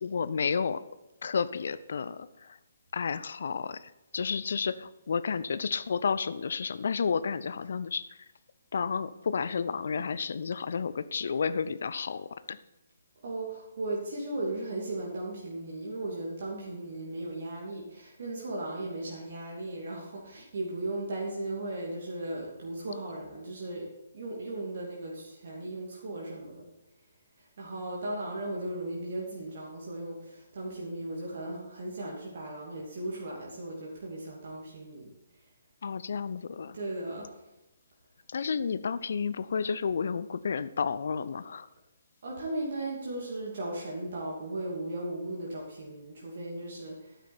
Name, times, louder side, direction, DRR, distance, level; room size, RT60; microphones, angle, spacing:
voice 1, 0.0-0.8 1.2-2.3 2.9-8.1 8.7-12.6 35.8-36.8 38.3-41.7, left 5 dB, 55° left, 15 dB, 0.6 m, -31 dB
voice 2, 13.2-26.7 27.4-35.1 36.7-37.4 42.2-47.2, right 2 dB, 50° right, -3 dB, 2.7 m, -37 dB
12.5 x 9.3 x 4.4 m, 0.99 s
figure-of-eight pair, 135°, 0 cm